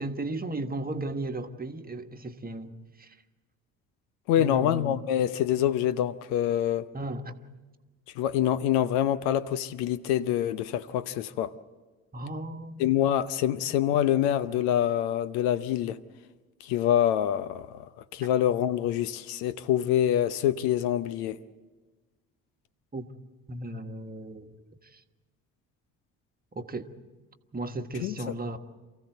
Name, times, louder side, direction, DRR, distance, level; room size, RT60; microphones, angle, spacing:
voice 1, 0.0-3.2 4.4-5.0 6.9-7.4 12.1-12.9 13.6-13.7 22.9-23.1 23.5-25.0 26.5-26.9 27.5-28.6, right 2 dB, 20° right, 1.5 m, -36 dB
voice 2, 4.3-6.9 8.1-11.6 12.8-16.0 16.6-21.4 28.0-28.3, left 11 dB, 65° left, 0.8 m, -26 dB
28.0 x 15.5 x 7.9 m
hypercardioid pair, 50°, 43 cm